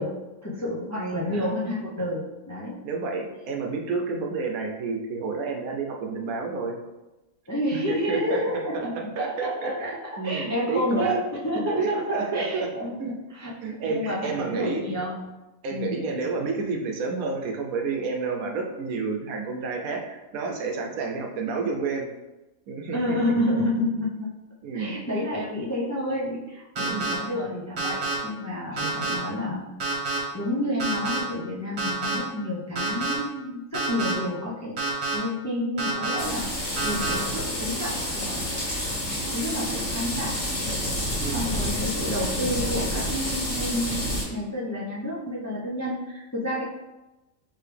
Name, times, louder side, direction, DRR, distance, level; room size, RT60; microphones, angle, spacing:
voice 1, 0.0-2.8 7.5-10.0 10.2-11.9 12.3-13.0 13.3-15.3 15.7-16.1 22.9-24.3 24.7-29.7 30.3-34.7 35.1-36.5 36.8-38.7 39.3-40.4 41.3-46.6, left 1 dB, 15° left, -6 dB, 0.6 m, -29 dB
voice 2, 1.0-1.5 2.8-6.8 7.9-11.2 11.8-12.7 13.0-13.1 13.6-14.8 15.6-22.1 22.7-23.4 24.6-25.0 26.8-27.1 28.8-29.3 41.2-41.5, right 4 dB, 80° right, 2 dB, 1.1 m, -30 dB
sound 1, 26.8-27.1 27.8-28.1 28.8-29.1 29.8-30.2 30.8-31.2 31.8-32.2 32.8-33.1 33.7-34.1 34.8-35.1 35.8-36.2 36.8-37.1, right 3 dB, 50° right, 1.3 m, -27 dB
sound 2, 36.2-44.2, equal, 55° left, 1.8 m, -29 dB
4.7 x 3.3 x 3.3 m, 1.0 s
omnidirectional pair, 1.5 m